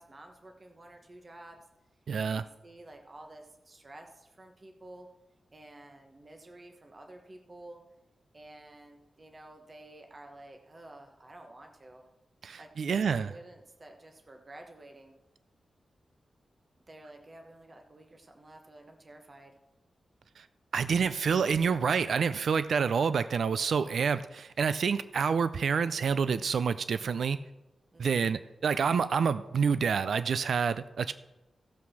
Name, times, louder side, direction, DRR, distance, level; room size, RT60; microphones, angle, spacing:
voice 1, 0.0-1.6 2.2-5.1 5.5-7.8 8.3-12.1 12.6-15.1 16.9-19.5 27.9-28.4, right 1 dB, 30° right, 4 dB, 1.1 m, -51 dB
voice 2, 2.1-2.4 12.4-13.3 20.4-20.5 20.7-27.4 28.0-31.1, right 6 dB, 75° right, 14 dB, 0.4 m, -28 dB
15.5 x 5.9 x 6.2 m, 0.99 s
wide cardioid pair, 125°, 0 cm